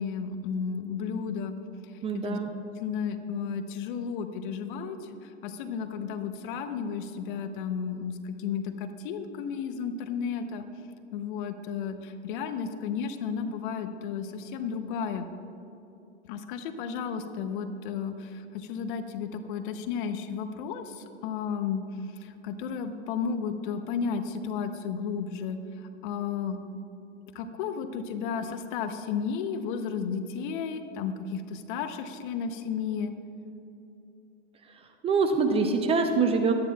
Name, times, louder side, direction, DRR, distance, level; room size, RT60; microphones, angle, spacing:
voice 1, 0.0-1.6 1.9-2.4 2.8-5.0 5.4-10.6 11.1-15.3 16.3-21.8 22.2-25.6 26.0-26.6 27.3-33.1, left 6 dB, 50° left, 9 dB, 0.7 m, -33 dB
voice 2, 2.0-2.5 35.0-36.5, right 4 dB, 20° right, 5 dB, 0.5 m, -24 dB
12.5 x 9.5 x 2.3 m, 2.8 s
hypercardioid pair, 115°, 34 cm